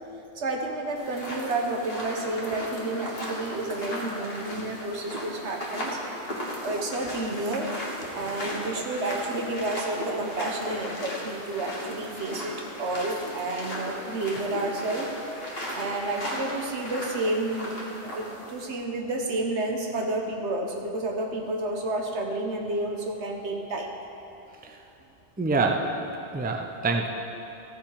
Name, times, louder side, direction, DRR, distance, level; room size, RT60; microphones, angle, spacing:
voice 1, 0.3-6.0 6.6-15.2 15.7-17.8 18.0-23.9, right 2 dB, 80° right, 2 dB, 1.4 m, -30 dB
sound 1, 1.0-18.6, equal, 60° left, 2.0 m, -36 dB
voice 2, 25.4-27.1, right 3 dB, 10° right, 3 dB, 0.5 m, -26 dB
14.5 x 7.1 x 4.9 m, 2.8 s
omnidirectional pair, 1.1 m